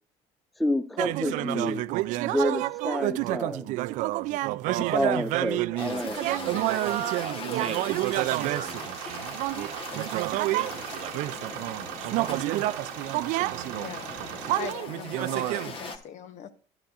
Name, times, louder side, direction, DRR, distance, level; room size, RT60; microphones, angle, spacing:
voice 1, 0.6-1.8 2.2-3.7 4.8-6.2, left 1 dB, ahead, 0.5 m, -29 dB
sound 1, 1.0-10.8 11.1-15.9, right 17 dB, 70° right, 0.4 m, -29 dB
sound 2, 5.8-16.0, left 4 dB, 45° left, 1.1 m, -40 dB
voice 2, 7.2-11.4 11.9-13.2, right 8 dB, 50° right, 0.9 m, -43 dB
sound 3, 8.1-14.7, right 11 dB, 85° right, 0.9 m, -39 dB
voice 3, 13.8-14.1 14.5-16.5, left 9 dB, 60° left, 0.9 m, -41 dB
11.5 x 10.0 x 2.4 m
supercardioid pair, 95°, 14 cm